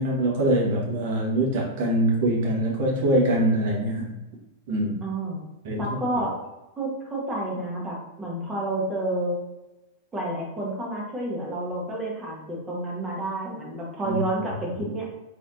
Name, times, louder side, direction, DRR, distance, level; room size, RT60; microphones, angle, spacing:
voice 1, 0.0-4.1 4.7-5.0 5.6-5.8 14.1-14.2, right 1 dB, 55° right, -3 dB, 1.4 m, -23 dB
voice 2, 5.0-5.4 5.8-6.3 6.8-9.3 10.1-15.1, right 1 dB, 20° right, -3 dB, 1.5 m, -30 dB
3.9 x 3.3 x 2.7 m, 1.0 s
hypercardioid pair, 95°, 0 cm